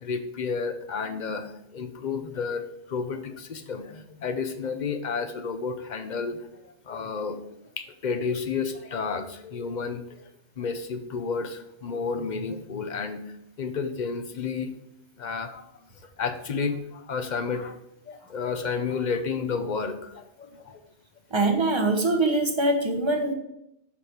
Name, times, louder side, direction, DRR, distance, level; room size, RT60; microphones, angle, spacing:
voice 1, 0.0-7.4 7.8-10.0 10.6-13.2 13.6-14.7 15.2-15.7 16.2-17.8 18.1-20.8, left 5 dB, 50° left, 9 dB, 0.7 m, -31 dB
voice 2, 21.3-23.3, right 2 dB, 25° right, 4 dB, 1.0 m, -23 dB
7.1 x 5.0 x 4.5 m, 0.80 s
omnidirectional pair, 1.1 m